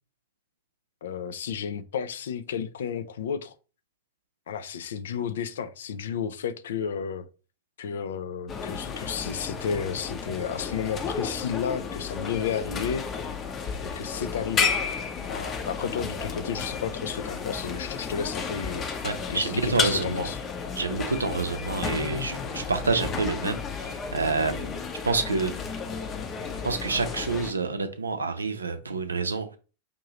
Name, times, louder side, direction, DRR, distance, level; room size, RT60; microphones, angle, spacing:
voice 1, 1.0-3.5 4.5-7.3 7.8-13.1 13.8-14.7 15.3-18.9 19.3-20.4, left 7 dB, 60° left, 0.4 m, -32 dB
sound 1, 8.5-27.5, left 5 dB, 30° left, 0.7 m, -32 dB
voice 2, 19.0-20.3 20.8-24.7 25.0-25.5 26.6-29.6, right 4 dB, 75° right, 0.5 m, -28 dB
5.2 x 2.7 x 3.0 m
figure-of-eight pair, 90°, 0 cm